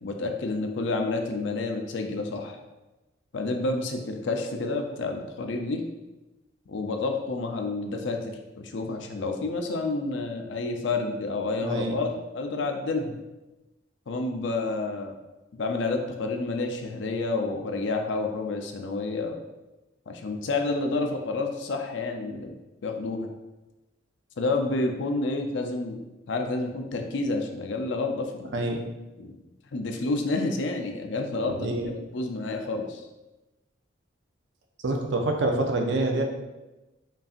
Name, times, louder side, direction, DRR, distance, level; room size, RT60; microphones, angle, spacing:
voice 1, 0.0-2.6 3.3-5.8 6.7-8.2 8.6-12.1 12.3-13.2 14.1-15.2 15.5-19.4 20.1-23.3 24.4-26.0 26.3-28.5 29.2-29.3 29.7-31.7 32.1-33.0, left 3 dB, 65° left, 4 dB, 0.5 m, -29 dB
voice 2, 11.6-12.0 28.5-28.8 31.5-31.9 34.8-36.2, right 2 dB, 65° right, 2 dB, 0.6 m, -26 dB
5.3 x 2.6 x 2.4 m, 1.1 s
head